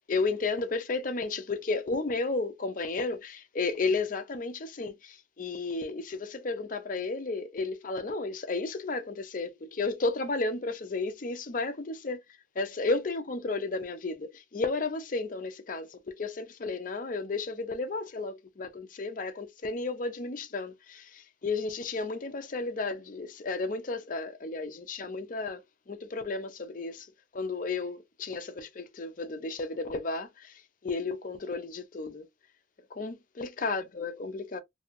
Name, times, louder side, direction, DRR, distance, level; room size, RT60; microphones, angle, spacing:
voice 1, 0.1-12.2 12.6-25.6 25.9-27.1 27.3-32.3 32.9-34.6, left 3 dB, 45° left, 0.5 m, -33 dB
2.7 x 2.7 x 2.5 m
head